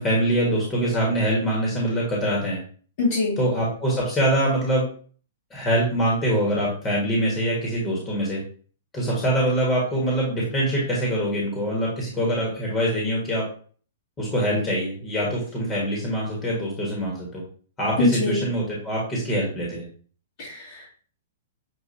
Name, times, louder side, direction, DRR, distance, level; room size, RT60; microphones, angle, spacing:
voice 1, 0.0-2.6 3.4-4.9 5.5-8.4 8.9-13.4 14.2-17.4 17.8-19.8, right 1 dB, 20° left, -4 dB, 1.4 m, -24 dB
voice 2, 3.0-3.4 18.0-18.5 20.4-20.9, left 3 dB, 55° left, -9 dB, 1.8 m, -23 dB
6.5 x 2.4 x 2.7 m, 0.43 s
hypercardioid pair, 135°, 0 cm